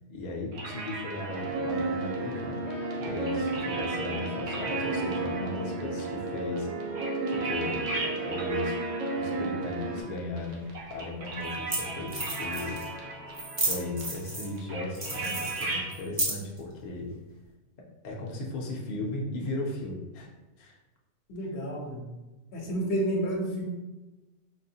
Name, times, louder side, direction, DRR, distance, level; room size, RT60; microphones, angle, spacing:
voice 1, 0.1-2.6 3.0-8.8 9.2-12.8 13.7-17.1 18.0-20.3 20.6-20.8, left 2 dB, 50° left, -2 dB, 0.5 m, -36 dB
sound 1, 0.5-15.9, right 3 dB, 65° right, 0.9 m, -38 dB
sound 2, 1.3-10.0, right 2 dB, 90° right, 1.1 m, -32 dB
sound 3, 10.6-10.7 11.5-11.6 11.7-11.8 12.1-12.9 13.3-14.6 14.9-16.6, right 1 dB, 35° right, 0.5 m, -32 dB
voice 2, 21.3-22.0 22.5-23.6, right 1 dB, 65° left, 0 dB, 0.9 m, -30 dB
4.0 x 2.1 x 2.7 m, 1.1 s
omnidirectional pair, 1.3 m